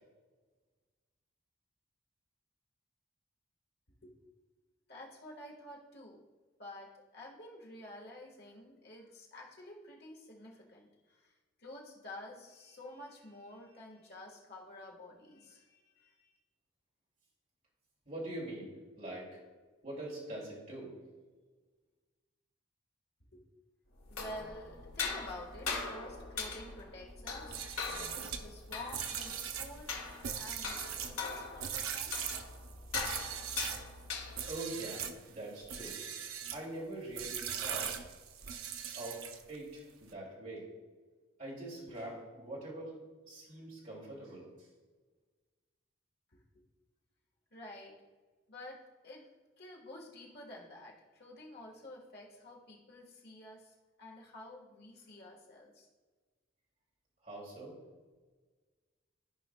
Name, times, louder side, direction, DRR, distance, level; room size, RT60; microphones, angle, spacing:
voice 1, 4.9-6.2 6.6-11.3 11.6-16.4 23.3-23.4 24.1-29.9 30.3-32.1 46.3-46.6 47.5-47.9 48.5-49.3 49.6-55.9, left 1 dB, 50° left, -2 dB, 1.5 m, -50 dB
voice 2, 18.1-19.4 19.8-21.0 34.5-36.0 36.5-38.1 38.9-40.7 41.4-42.9 43.3-44.5 57.2-57.8, right 1 dB, 40° right, -5 dB, 2.5 m, -43 dB
sound 1, 24.0-34.6, left 4 dB, 90° left, 1.2 m, -41 dB
sound 2, 27.4-33.9 34.3-35.2 35.6-36.6 37.1-39.6, right 8 dB, 80° right, 0.6 m, -40 dB
14.5 x 5.0 x 2.3 m, 1.4 s
head